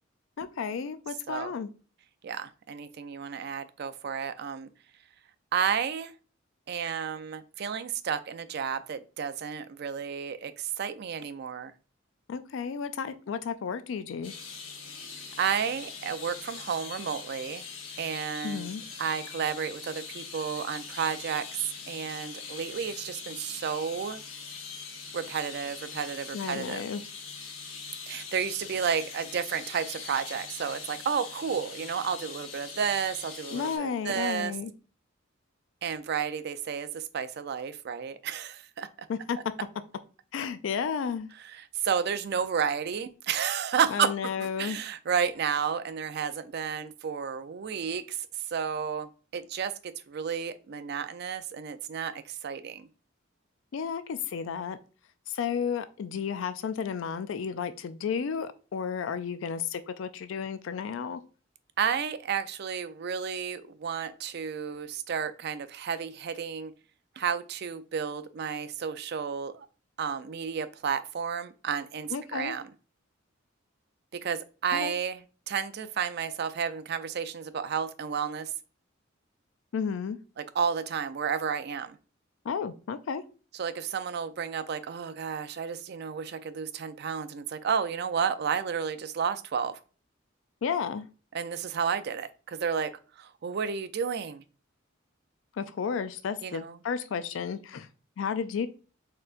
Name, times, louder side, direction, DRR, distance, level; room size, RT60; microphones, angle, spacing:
voice 1, 0.4-1.7 12.3-14.3 18.4-18.8 26.3-27.0 33.5-34.7 39.1-39.4 40.3-41.3 43.9-44.8 53.7-54.8 55.3-61.2 72.1-72.6 74.7-74.9 79.7-80.2 82.5-83.2 90.6-91.1 95.6-97.9 98.2-98.7, left 6 dB, 70° left, 0.4 m, -32 dB
voice 2, 2.2-4.7 5.5-6.1 6.7-11.7 15.4-17.7 18.0-18.7 19.0-21.5 21.9-24.2 25.1-26.8 28.1-34.5 35.8-38.9 41.4-44.1 44.4-48.3 48.5-52.9 61.8-66.7 67.2-69.7 70.0-72.7 74.1-78.5 80.4-82.0 83.5-89.8 91.3-92.9 93.2-94.4 96.4-96.8, right 7 dB, 55° right, 0.4 m, -32 dB
sound 1, 14.2-33.8, left 5 dB, 85° left, 1.0 m, -42 dB
4.3 x 3.8 x 2.4 m
head